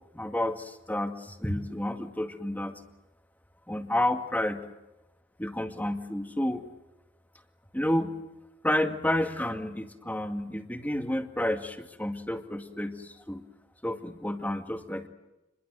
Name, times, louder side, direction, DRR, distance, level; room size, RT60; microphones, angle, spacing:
voice 1, 0.1-2.8 3.7-4.6 5.4-6.6 7.7-8.1 8.6-13.4 13.8-15.1, left 1 dB, 10° left, 5 dB, 2.2 m, -30 dB
27.0 x 22.0 x 7.9 m, 0.97 s
head